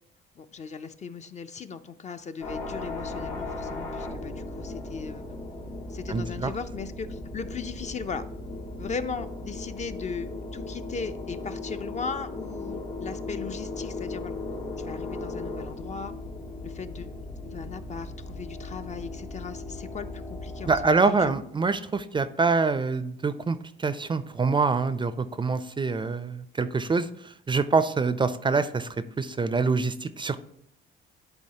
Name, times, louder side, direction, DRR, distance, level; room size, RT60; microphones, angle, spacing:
voice 1, 0.4-5.2 5.9-8.2 8.8-14.3 14.8-16.1 16.6-17.1 17.4-21.3, left 5 dB, 35° left, 10 dB, 0.4 m, -37 dB
sound 1, 2.4-20.8, left 2 dB, 80° left, 2.0 m, -37 dB
voice 2, 6.1-6.5 20.7-28.9 29.2-30.4, right 4 dB, 25° right, 13 dB, 0.4 m, -25 dB
10.5 x 3.9 x 2.8 m, 0.70 s
cardioid pair, 90°, 20 cm